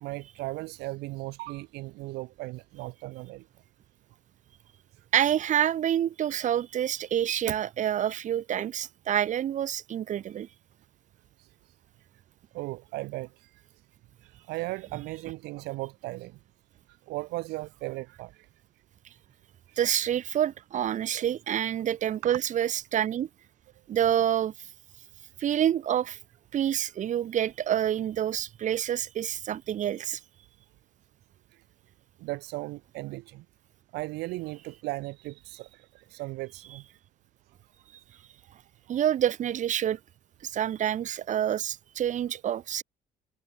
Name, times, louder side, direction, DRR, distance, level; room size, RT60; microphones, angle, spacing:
voice 1, 0.0-3.5 11.4-11.5 12.5-13.6 14.2-16.4 17.1-18.5 19.7-19.8 21.1-21.3 22.2-22.4 32.2-33.5 33.9-36.8, right 21 dB, 85° right, 0.5 m, -37 dB
voice 2, 5.1-10.5 19.8-23.3 23.9-24.5 25.4-26.2 26.5-30.2 38.9-40.0 40.4-42.8, right 10 dB, 45° right, 0.8 m, -27 dB
cardioid pair, 110°, 17 cm